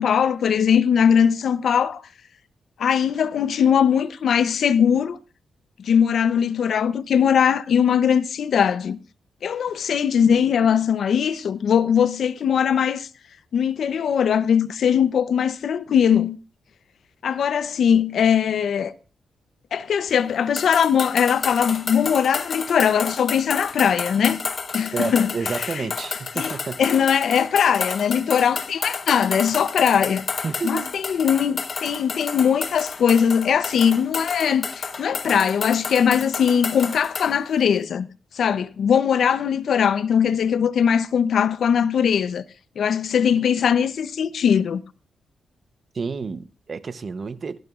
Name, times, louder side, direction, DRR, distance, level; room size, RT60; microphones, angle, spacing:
voice 1, 0.0-2.0 2.8-5.2 5.8-9.0 9.4-13.1 13.5-16.4 17.2-18.9 19.7-24.4 24.7-25.3 25.6-25.7 26.4-26.5 26.8-30.2 30.6-38.1 38.3-42.4 42.8-44.8, left 7 dB, 70° left, 0.7 m, -20 dB
sound 1, 20.6-37.3, left 5 dB, 45° left, 1.1 m, -31 dB
voice 2, 24.9-26.8 30.4-30.9 45.9-47.6, right 4 dB, 45° right, 0.8 m, -30 dB
18.0 x 14.0 x 2.5 m
cardioid pair, 100°, 0 cm